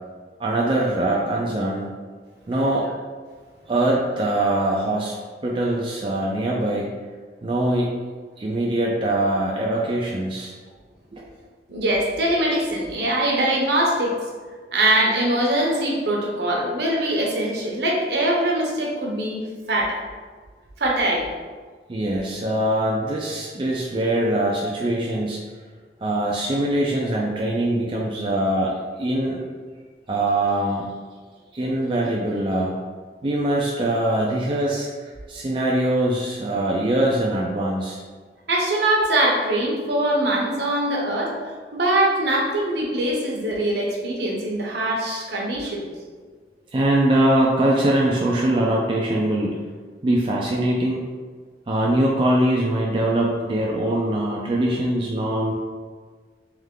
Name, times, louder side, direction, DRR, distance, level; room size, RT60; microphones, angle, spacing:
voice 1, 0.4-1.9 2.5-2.9 3.7-5.2 5.4-6.9 7.4-7.9 8.4-10.5 11.1-11.2 21.9-25.4 26.0-29.4 30.1-30.9 31.5-32.8 33.2-38.0 46.7-49.6 50.0-51.1 51.7-55.5, right 1 dB, 30° right, -3 dB, 0.4 m, -22 dB
voice 2, 11.7-14.2 14.7-19.4 19.7-20.0 20.8-21.3 38.5-41.3 41.7-45.9, right 1 dB, 65° right, -2 dB, 0.9 m, -22 dB
3.4 x 3.2 x 3.6 m, 1.5 s
head